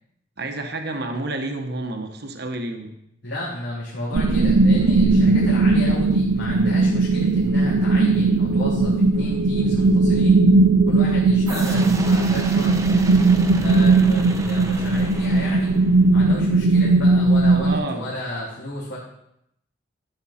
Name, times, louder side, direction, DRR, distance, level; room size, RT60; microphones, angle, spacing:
voice 1, 0.4-2.9 17.5-18.1, right 2 dB, 55° right, 4 dB, 1.2 m, -30 dB
voice 2, 3.2-10.4 10.9-12.8 13.5-15.8 16.1-19.0, left 1 dB, 80° left, -9 dB, 3.6 m, -32 dB
sound 1, 4.1-17.8, right 3 dB, 90° right, 0.6 m, -18 dB
sound 2, 11.5-16.1, right 1 dB, 15° right, 0.9 m, -34 dB
13.5 x 8.6 x 4.3 m, 0.78 s
head